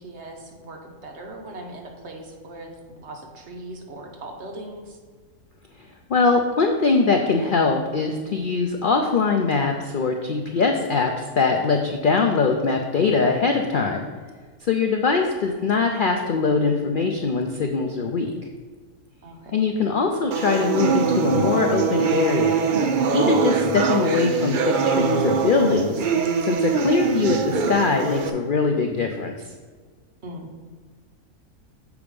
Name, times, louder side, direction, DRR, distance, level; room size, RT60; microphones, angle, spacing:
voice 1, 0.0-5.0 19.2-19.6 30.2-30.5, right 1 dB, 55° right, 2 dB, 1.2 m, -39 dB
voice 2, 6.1-14.1 14.7-18.3 19.5-22.5 23.1-26.0 26.5-29.3, left 4 dB, 65° left, 3 dB, 0.5 m, -22 dB
sound 1, 20.3-28.3, right 5 dB, 70° right, 0.4 m, -23 dB
7.1 x 4.9 x 5.1 m, 1.5 s
omnidirectional pair, 1.5 m